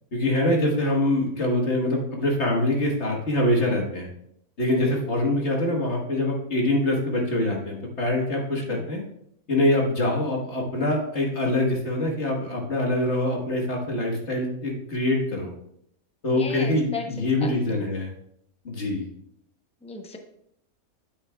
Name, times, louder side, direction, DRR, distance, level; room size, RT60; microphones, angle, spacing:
voice 1, 0.1-4.1 4.6-9.0 9.5-15.5 16.2-18.1 18.6-19.0, left 1 dB, 50° left, 0 dB, 1.7 m, -24 dB
voice 2, 16.3-17.9 19.8-20.2, left 4 dB, 5° left, 3 dB, 0.5 m, -36 dB
9.6 x 8.5 x 2.3 m, 0.72 s
omnidirectional pair, 1.6 m